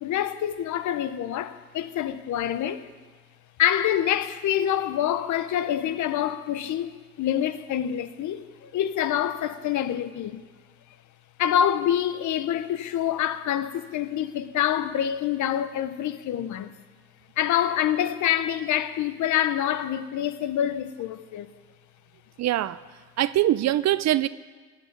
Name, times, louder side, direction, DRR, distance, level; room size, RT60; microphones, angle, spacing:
voice 1, 0.0-2.9 3.6-6.9 7.2-10.4 11.4-16.7 17.4-21.5, left 10 dB, 75° left, 0.7 m, -26 dB
voice 2, 22.4-22.8 23.2-24.3, right 13 dB, 60° right, 0.5 m, -23 dB
14.5 x 6.0 x 9.2 m
cardioid pair, 90°, 30 cm